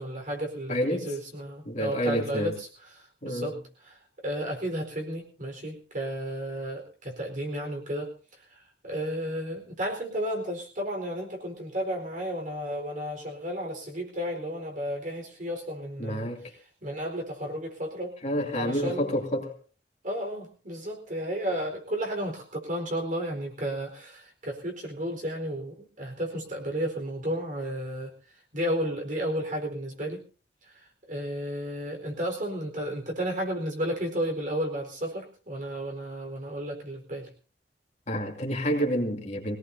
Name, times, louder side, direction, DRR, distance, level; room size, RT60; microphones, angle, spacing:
voice 1, 0.0-2.7 2.9-3.6 3.9-4.0 4.2-8.1 8.5-16.3 16.8-18.1 18.5-19.1 20.0-28.1 28.5-30.2 30.6-37.3, equal, 45° right, 4.4 m, -33 dB
voice 2, 0.7-1.1 1.6-2.5 3.2-3.5 16.0-16.5 18.2-19.6 38.1-39.6, equal, 40° left, 2.8 m, -29 dB
22.0 x 18.0 x 2.7 m
head